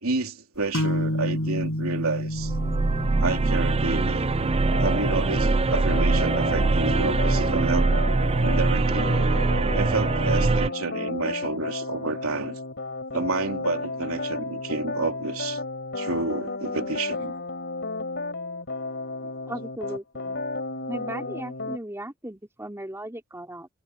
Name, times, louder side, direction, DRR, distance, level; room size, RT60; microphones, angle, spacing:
voice 1, 0.0-2.5 3.2-4.3 4.8-7.9 8.4-9.1 9.7-12.6 13.1-15.6 15.9-17.3 19.2-19.3, right 3 dB, 90° right, 3.1 m, -29 dB
sound 1, 0.7-8.2, equal, 75° left, 7.0 m, -32 dB
sound 2, 2.3-10.7, right 3 dB, 30° right, 0.4 m, -23 dB
sound 3, 4.7-21.8, left 3 dB, 55° left, 5.0 m, -33 dB
voice 2, 19.5-20.4 20.9-23.7, right 1 dB, 10° right, 4.3 m, -37 dB
head